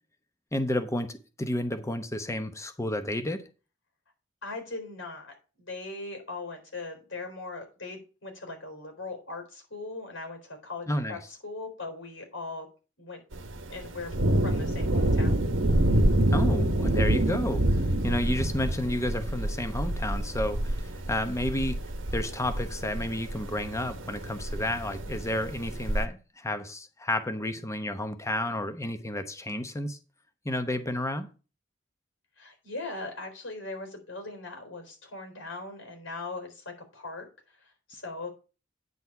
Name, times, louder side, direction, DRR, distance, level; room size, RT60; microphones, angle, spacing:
voice 1, 0.5-3.4 10.9-11.2 16.3-21.8 22.1-30.0 30.4-31.3, left 1 dB, 15° left, 0.9 m, -31 dB
voice 2, 4.4-12.7 13.0-13.2 13.7-14.1 14.4-15.4 17.8-18.2 32.4-38.3, left 3 dB, 90° left, 4.0 m, -40 dB
Thunder, 13.3-26.0, right 1 dB, 85° right, 1.0 m, -27 dB
9.4 x 4.1 x 7.0 m
head